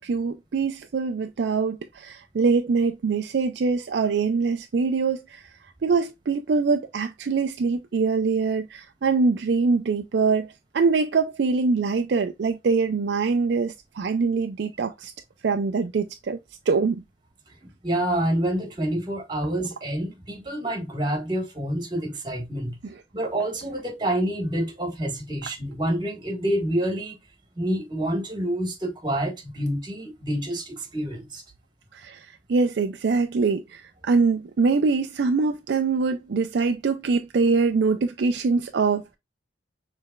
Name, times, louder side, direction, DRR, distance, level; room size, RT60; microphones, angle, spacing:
voice 1, 0.0-5.5 5.8-15.1 15.4-16.4 16.7-17.0 22.8-22.9 31.9-39.2, right 4 dB, 60° right, 0.4 m, -24 dB
voice 2, 17.8-22.8 23.1-27.2 27.6-31.4, right 1 dB, 25° right, 1.5 m, -27 dB
6.4 x 3.3 x 2.3 m
head